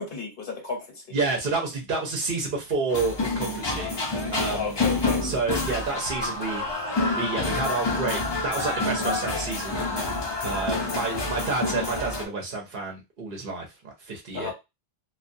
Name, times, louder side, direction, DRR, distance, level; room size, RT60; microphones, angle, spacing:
voice 1, 0.0-1.2 4.5-5.2 14.3-14.5, left 4 dB, 60° left, 2 dB, 1.0 m, -33 dB
voice 2, 1.1-4.8 5.2-6.7 7.2-9.8 10.4-14.5, right 3 dB, 60° right, 1 dB, 0.8 m, -30 dB
sound 1, 2.9-12.2, left 2 dB, 35° left, 0.5 m, -28 dB
2.2 x 2.2 x 2.5 m, 0.23 s
omnidirectional pair, 1.1 m